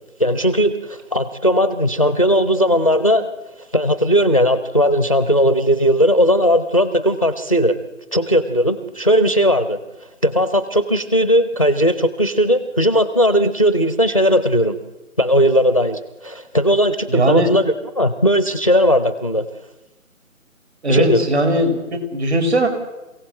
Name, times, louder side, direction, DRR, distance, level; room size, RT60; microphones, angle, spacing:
voice 1, 0.2-3.2 3.7-7.8 8.1-9.8 10.2-14.8 15.2-19.5 20.9-21.3, equal, 25° left, 12 dB, 0.7 m, -17 dB
voice 2, 17.1-17.5 20.8-22.7, right 1 dB, 50° right, 6 dB, 4.9 m, -18 dB
28.0 x 16.5 x 7.7 m, 1.1 s
figure-of-eight pair, 165°, 42 cm